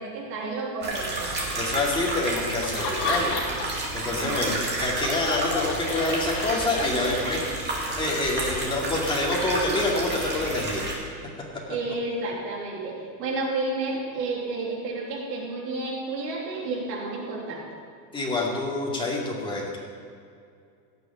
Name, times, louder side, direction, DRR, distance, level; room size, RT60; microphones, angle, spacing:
voice 1, 0.0-1.3 4.0-4.6 6.9-7.5 11.7-17.6, right 3 dB, 80° right, -3 dB, 3.2 m, -31 dB
sound 1, 0.8-10.9, right 2 dB, 20° right, 2.4 m, -31 dB
voice 2, 1.5-3.3 3.9-7.4 7.9-10.8 18.1-19.8, left 2 dB, 10° left, -4 dB, 2.4 m, -27 dB
Laughter, 2.6-3.9 4.2-7.4, left 4 dB, 50° left, 2.1 m, -31 dB
17.0 x 6.9 x 5.8 m, 2.4 s
supercardioid pair, 145°, 49 cm